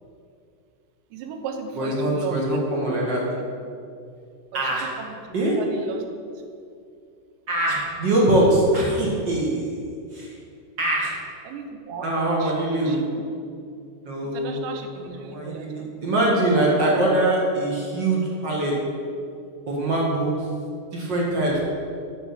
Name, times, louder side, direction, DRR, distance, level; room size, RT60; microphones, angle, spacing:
voice 1, 1.1-2.6 2.9-3.0 4.5-6.1 11.4-13.2 14.2-15.9, right 5 dB, 85° right, 5 dB, 3.2 m, -36 dB
voice 2, 1.8-3.2 4.5-4.9 5.3-5.5 7.5-9.7 10.1-10.3 10.8-11.1 12.0-13.0 14.0-14.7 15.2-18.7 19.7-20.4 20.9-21.6, right 1 dB, 50° right, -3 dB, 1.3 m, -23 dB
10.0 x 6.7 x 7.9 m, 2.4 s
omnidirectional pair, 4.9 m